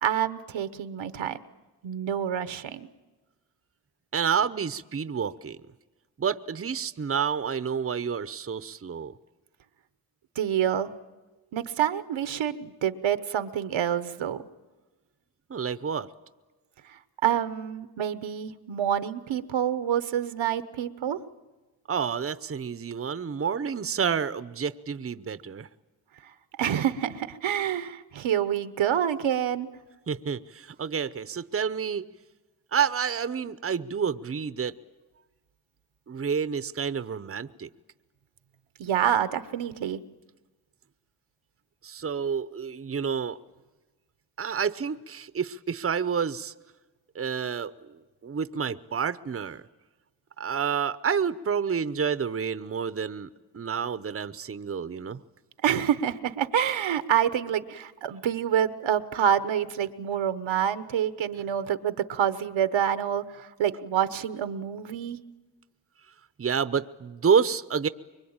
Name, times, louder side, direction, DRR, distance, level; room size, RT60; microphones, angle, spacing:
voice 1, 0.0-1.4 1.8-2.9 10.4-10.9 11.5-14.4 16.9-21.2 26.6-29.7 38.8-40.0 55.6-65.2, right 9 dB, 85° right, 12 dB, 1.1 m, -27 dB
voice 2, 4.1-5.6 6.2-9.1 15.5-16.1 21.9-25.7 30.1-32.1 32.7-34.7 36.1-37.7 41.8-43.4 44.4-46.5 47.1-49.6 50.4-53.3 53.5-55.2 66.4-67.9, right 7 dB, 30° right, 14 dB, 0.8 m, -29 dB
25.0 x 23.0 x 8.8 m, 1.2 s
cardioid pair, 75°, 45 cm